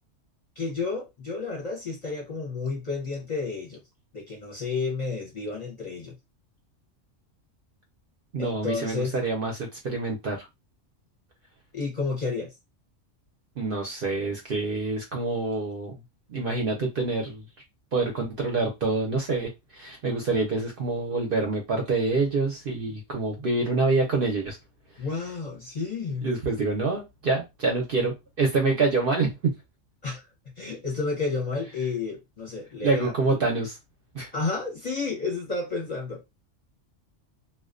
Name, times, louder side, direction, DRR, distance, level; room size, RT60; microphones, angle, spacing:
voice 1, 0.6-3.8 4.1-6.1 8.4-9.2 11.7-12.5 25.0-26.3 30.0-30.3 30.6-33.4 34.3-36.4, left 4 dB, 40° left, 0.6 m, -31 dB
voice 2, 8.3-10.5 13.6-16.0 16.3-17.4 17.9-24.6 26.2-29.5 32.8-33.8 34.1-34.3, right 3 dB, 60° right, 0.6 m, -26 dB
2.4 x 2.1 x 2.4 m
omnidirectional pair, 1.3 m